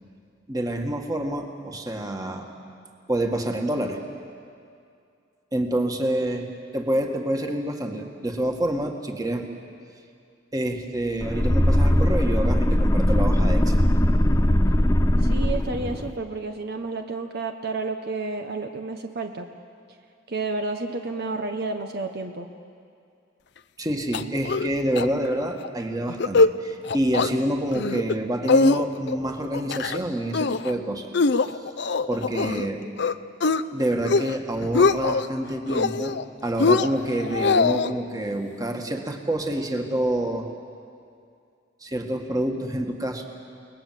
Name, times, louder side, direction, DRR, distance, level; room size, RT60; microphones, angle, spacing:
voice 1, 0.5-2.5 3.1-4.0 5.5-6.5 6.7-9.5 10.5-13.8 23.8-31.1 32.1-32.9 33.7-40.5 41.8-43.3, right 1 dB, 20° right, 3 dB, 2.0 m, -27 dB
sound 1, 11.2-16.1, left 1 dB, 15° left, 0.8 m, -20 dB
voice 2, 15.2-19.5 20.3-22.5, right 3 dB, 60° right, 5 dB, 1.1 m, -31 dB
sound 2, 24.1-24.7 25.0-25.1 25.4-25.7 26.1-26.5 26.9-27.3 27.7-28.2 28.5-29.2 29.5-30.0 30.3-30.7 31.1-32.7 33.0-33.6 34.0-34.4 34.6-35.3 35.7-36.2 36.6-37.9, left 4 dB, 65° left, 0.6 m, -22 dB
29.5 x 19.5 x 7.7 m, 2.4 s
head